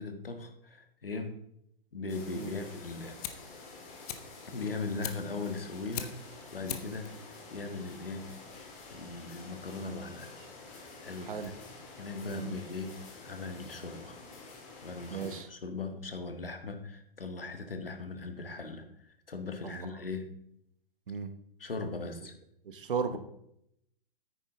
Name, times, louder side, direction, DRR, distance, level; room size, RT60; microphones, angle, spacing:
voice 1, 0.0-1.4 1.9-3.2 4.5-7.1 7.5-8.3 8.9-10.3 11.0-11.4 12.0-14.2 14.8-20.3 21.6-22.3 23.1-23.2, left 3 dB, 75° left, 6 dB, 1.7 m, -39 dB
sound 1, 2.1-15.4, left 3 dB, 25° left, 2.3 m, -49 dB
Fire, 3.2-13.2, left 9 dB, 40° left, 1.0 m, -46 dB
voice 2, 15.1-15.5 19.6-19.9 21.1-21.3 22.7-23.2, right 6 dB, 65° right, 10 dB, 1.2 m, -35 dB
9.8 x 9.2 x 3.8 m, 0.74 s
figure-of-eight pair, 115°, 29 cm